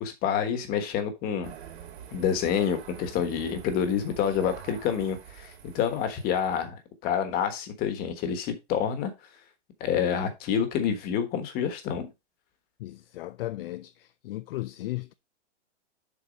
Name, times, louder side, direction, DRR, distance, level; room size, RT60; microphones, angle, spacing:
voice 1, 0.0-1.5 2.1-9.1 9.8-12.1, left 8 dB, 25° left, 1.3 m, -28 dB
sound 1, 1.4-6.6, right 9 dB, 60° right, 2.8 m, -46 dB
voice 2, 12.8-15.1, left 16 dB, 55° left, 0.5 m, -36 dB
7.2 x 4.4 x 5.1 m
supercardioid pair, 160°, 36 cm